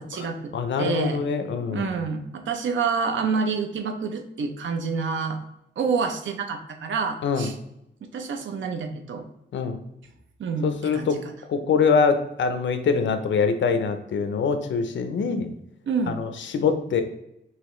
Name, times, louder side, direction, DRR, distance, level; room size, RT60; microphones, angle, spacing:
voice 1, 0.0-0.5 0.8-1.2 1.7-5.4 5.8-7.5 8.0-9.3 10.4-11.1 15.9-16.2, right 5 dB, 90° right, 5 dB, 0.7 m, -28 dB
voice 2, 0.5-1.9 7.2-7.5 9.5-9.8 10.6-11.2 11.5-15.5 16.1-17.0, left 5 dB, 80° left, 8 dB, 0.6 m, -24 dB
5.6 x 3.0 x 3.1 m, 0.81 s
wide cardioid pair, 155°, 19 cm